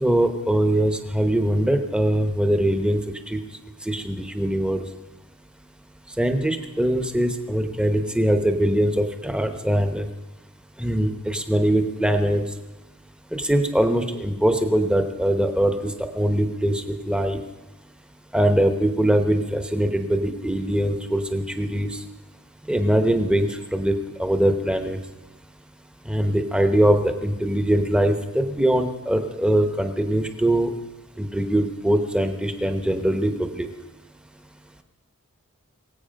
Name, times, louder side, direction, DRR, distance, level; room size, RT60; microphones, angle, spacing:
voice 1, 0.0-3.4 3.8-4.8 6.2-10.1 10.8-12.4 13.3-17.4 18.3-22.0 22.6-25.0 26.0-30.7 31.2-33.7, right 1 dB, 5° right, 7 dB, 1.0 m, -22 dB
23.0 x 8.3 x 5.2 m, 1.1 s
head